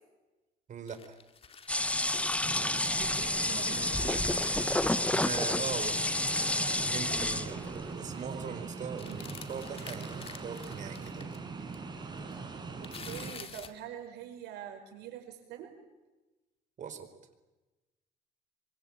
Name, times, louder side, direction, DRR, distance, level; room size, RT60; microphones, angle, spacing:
voice 1, 0.7-1.2 5.1-11.3 16.8-17.1, right 6 dB, 45° right, 8 dB, 4.4 m, -41 dB
sound 1, 0.9-3.2 3.6-7.2 7.5-7.7 8.0-8.3 9.0-11.4 11.7-11.8 12.2-13.8, left 5 dB, 35° left, 2.3 m, -50 dB
sound 2, 1.7-7.8, left 1 dB, 5° left, 0.9 m, -30 dB
sound 3, 2.4-13.3, right 4 dB, 25° right, 4.9 m, -41 dB
voice 2, 2.8-4.3 9.1-9.3 12.8-15.8, right 10 dB, 85° right, 5 dB, 5.7 m, -45 dB
26.0 x 24.0 x 8.8 m, 1.1 s
cardioid pair, 110°, 17 cm